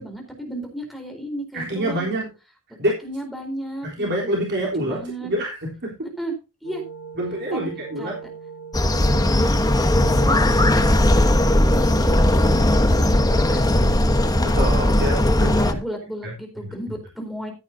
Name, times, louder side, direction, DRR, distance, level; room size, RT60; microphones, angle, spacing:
voice 1, 0.0-2.1 2.7-4.4 4.8-5.3 6.2-6.3 6.6-6.8 7.5-7.7 8.0-8.2 9.1-9.5 9.8-12.4 12.8-14.3 15.6-17.5, right 1 dB, ahead, 3 dB, 4.1 m, -34 dB
voice 2, 1.5-2.3 2.8-3.0 3.8-6.0 7.2-8.2 14.5-15.6 16.6-16.7, right 1 dB, 50° right, -2 dB, 3.7 m, -26 dB
sound 1, 6.6-12.3, right 5 dB, 90° left, 1.9 m, -40 dB
sound 2, 8.7-15.7, left 1 dB, 15° left, 1.1 m, -18 dB
15.0 x 10.5 x 2.8 m, 0.29 s
head